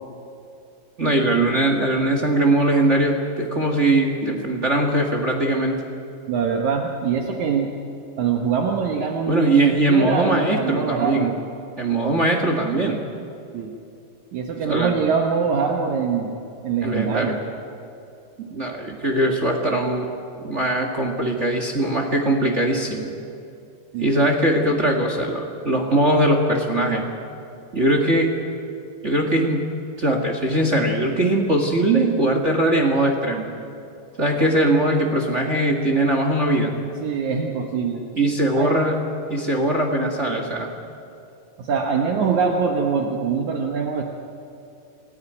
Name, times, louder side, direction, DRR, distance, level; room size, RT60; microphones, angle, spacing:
voice 1, 1.0-5.8 9.3-11.3 11.8-13.0 14.7-14.9 16.8-17.4 18.4-20.1 20.4-23.1 24.0-27.0 27.7-28.3 29.0-29.7 30.0-33.5 34.2-36.7 38.2-39.0 39.3-40.7, right 1 dB, 35° right, 3 dB, 1.2 m, -21 dB
voice 2, 6.3-7.7 8.2-11.4 13.5-13.7 14.3-16.3 16.6-17.4 23.9-24.1 36.7-38.0 38.6-38.8 41.6-44.0, right 6 dB, 65° right, 2 dB, 2.5 m, -23 dB
27.0 x 15.0 x 9.9 m, 2.6 s
omnidirectional pair, 3.9 m